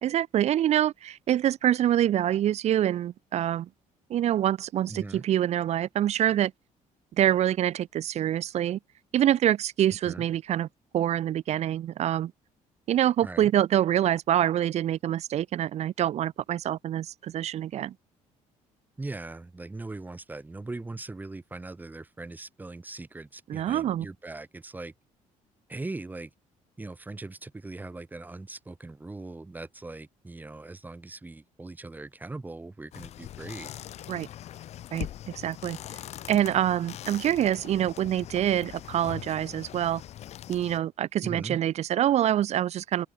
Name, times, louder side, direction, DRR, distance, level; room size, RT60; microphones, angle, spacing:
voice 1, 0.0-3.7 4.1-6.5 7.2-8.8 9.1-10.7 10.9-12.3 12.9-17.9 23.5-24.1 34.1-34.3 34.9-35.1 35.3-35.8 36.3-40.0 40.5-43.1, right 11 dB, 50° right, 0.7 m, -25 dB
voice 2, 4.9-5.2 10.0-10.2 13.2-13.5 19.0-24.9 25.7-26.3 26.8-33.7 41.2-41.6, right 2 dB, 10° right, 2.2 m, -40 dB
sound 1, 32.9-40.8, left 12 dB, 50° left, 0.5 m, -42 dB
open air
cardioid pair, 145°, 14 cm